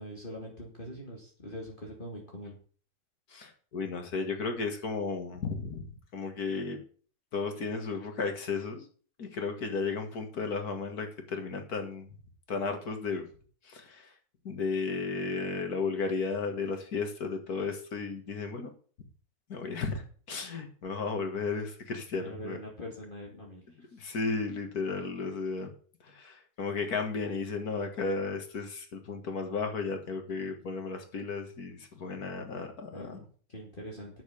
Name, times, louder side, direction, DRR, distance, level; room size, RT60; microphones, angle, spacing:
voice 1, 0.0-2.6 22.2-23.6 32.9-34.2, equal, 35° left, -1 dB, 2.6 m, -43 dB
voice 2, 3.3-5.9 6.1-6.8 7.3-8.9 9.2-12.1 12.5-13.3 13.6-14.1 14.4-18.7 19.5-22.6 23.8-25.7 26.0-33.3, left 4 dB, 85° left, 5 dB, 2.3 m, -34 dB
9.3 x 6.8 x 8.4 m, 0.44 s
omnidirectional pair, 1.6 m